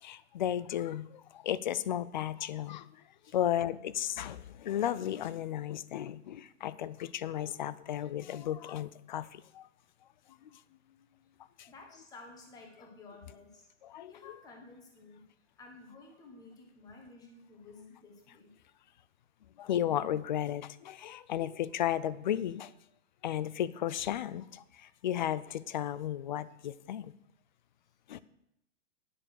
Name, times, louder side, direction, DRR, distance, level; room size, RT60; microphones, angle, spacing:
voice 1, 0.0-2.9 3.3-9.7 10.5-10.6 11.6-11.7 13.8-14.1 19.6-22.7 23.2-27.1 28.1-28.2, left 11 dB, 40° left, 18 dB, 0.4 m, -34 dB
voice 2, 11.7-13.7 14.1-18.5, left 3 dB, 10° left, 3 dB, 1.4 m, -53 dB
10.0 x 7.0 x 6.4 m, 0.84 s
hypercardioid pair, 170°, 35 cm